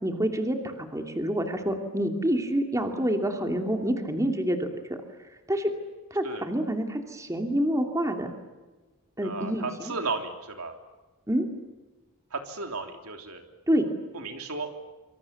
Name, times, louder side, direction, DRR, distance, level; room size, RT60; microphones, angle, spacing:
voice 1, 0.0-5.0 5.5-5.7 6.1-8.3 9.2-9.9 11.3-11.5 13.7-13.9, equal, 15° right, 4 dB, 2.7 m, -27 dB
voice 2, 9.2-10.7 12.3-13.4 14.1-14.7, right 3 dB, 75° right, 4 dB, 3.4 m, -34 dB
26.0 x 26.0 x 7.2 m, 1.2 s
head